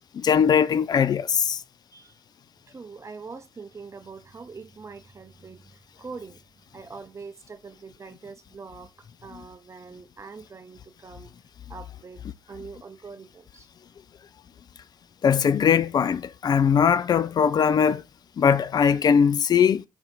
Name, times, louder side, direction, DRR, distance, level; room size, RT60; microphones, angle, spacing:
voice 1, 0.1-1.6 9.3-9.4 15.2-18.0 18.4-19.8, left 7 dB, 40° left, 0.4 m, -20 dB
voice 2, 2.7-6.4 6.7-11.3 11.7-13.7, right 4 dB, 30° right, 0.7 m, -43 dB
4.5 x 2.6 x 4.0 m
hypercardioid pair, 45°, 10 cm